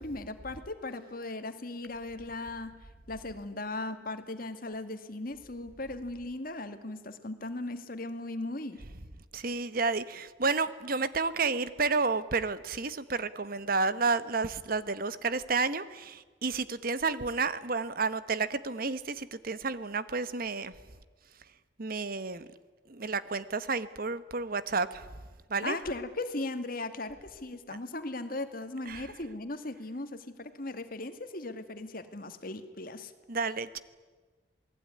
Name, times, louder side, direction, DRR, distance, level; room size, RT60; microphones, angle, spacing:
voice 1, 0.0-2.7 3.1-8.8 25.6-33.1, left 2 dB, 50° left, 9 dB, 2.1 m, -38 dB
voice 2, 9.3-20.7 21.8-22.5 22.9-25.1 25.5-25.8 28.9-29.1 33.3-33.8, right 4 dB, 50° right, 14 dB, 1.1 m, -31 dB
28.0 x 19.5 x 9.7 m, 1.3 s
head